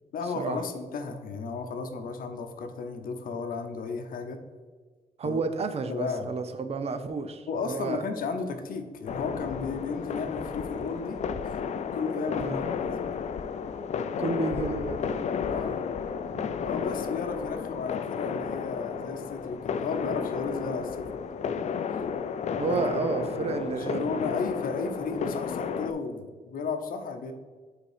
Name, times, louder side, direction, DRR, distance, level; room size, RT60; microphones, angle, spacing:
voice 1, 0.1-4.4 5.2-5.4 5.9-6.3 7.5-11.2 11.4-11.6 11.9-13.1 15.4-15.8 16.6-21.1 22.6-23.1 23.3-23.5 23.9-27.3, left 4 dB, 75° left, 7 dB, 0.7 m, -34 dB
voice 2, 5.2-8.0 12.4-12.6 14.2-15.3 16.3-16.5 22.6-24.2, right 4 dB, 45° right, 10 dB, 0.5 m, -31 dB
Shanghai Fireworks, 9.1-25.9, left 6 dB, 50° left, 0.4 m, -32 dB
5.2 x 4.2 x 4.9 m, 1.4 s
wide cardioid pair, 130°, 15 cm